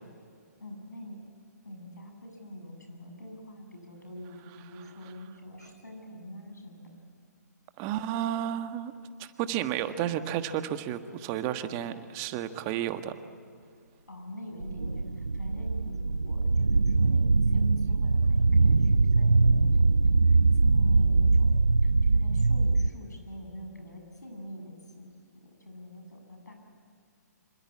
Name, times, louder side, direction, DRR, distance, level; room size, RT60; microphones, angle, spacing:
voice 1, 0.6-1.2 1.6-6.9 14.1-21.5 21.8-26.5, equal, 85° left, 3 dB, 7.5 m, -45 dB
voice 2, 7.8-8.9 9.2-13.1, right 11 dB, 30° right, 9 dB, 1.5 m, -32 dB
sound 1, 14.6-22.9, right 3 dB, 90° right, 0.7 m, -22 dB
26.5 x 26.0 x 8.6 m, 2.3 s
figure-of-eight pair, 130°, 9 cm